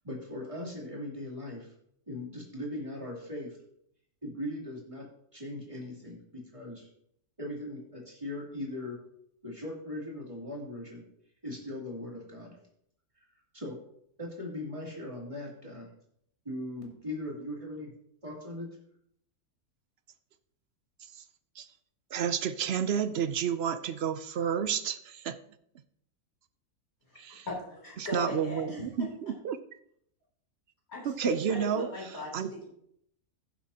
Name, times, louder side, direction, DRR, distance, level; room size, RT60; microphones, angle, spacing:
voice 1, 0.0-1.7 2.1-3.6 4.2-6.9 7.4-9.0 9.4-11.1 11.4-12.6 13.5-13.8 14.2-15.9 16.4-17.9 18.2-18.7, left 1 dB, 20° right, -3 dB, 2.9 m, -39 dB
voice 2, 22.1-25.4 27.2-27.5 28.0-29.6 31.0-31.9 32.3-32.5, right 8 dB, 60° right, 11 dB, 0.7 m, -30 dB
voice 3, 27.5-29.1 30.9-32.6, left 2 dB, 45° left, -3 dB, 3.7 m, -38 dB
15.5 x 7.4 x 2.8 m, 0.71 s
omnidirectional pair, 1.5 m